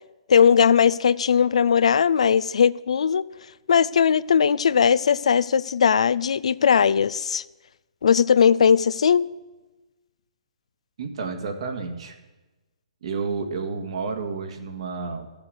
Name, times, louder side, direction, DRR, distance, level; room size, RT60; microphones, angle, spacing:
voice 1, 0.3-3.2 3.7-7.4 8.0-9.3, left 7 dB, 75° left, 0.4 m, -19 dB
voice 2, 11.0-12.2 13.0-15.3, right 4 dB, 65° right, 1.8 m, -30 dB
13.5 x 7.1 x 6.6 m
hypercardioid pair, 135°, 3 cm